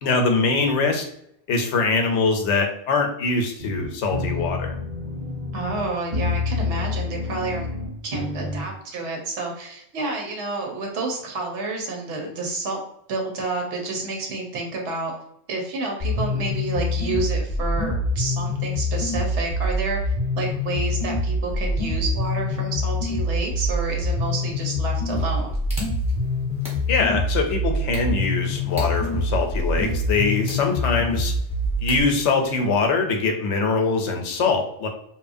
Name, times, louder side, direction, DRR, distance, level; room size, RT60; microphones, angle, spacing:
voice 1, 0.0-1.1 1.5-4.8 26.9-31.3 31.8-34.9, left 4 dB, 85° left, 3 dB, 0.9 m, -23 dB
sound 1, 3.6-8.6, left 3 dB, 45° right, 0.7 m, -28 dB
voice 2, 5.5-12.8 13.1-15.1 15.5-25.6, right 3 dB, 80° right, 1 dB, 0.9 m, -29 dB
sound 2, 16.0-32.0, left 1 dB, 40° left, 0.7 m, -25 dB
sound 3, 25.1-32.9, left 1 dB, 5° right, 0.9 m, -43 dB
2.9 x 2.1 x 2.5 m, 0.74 s
omnidirectional pair, 1.2 m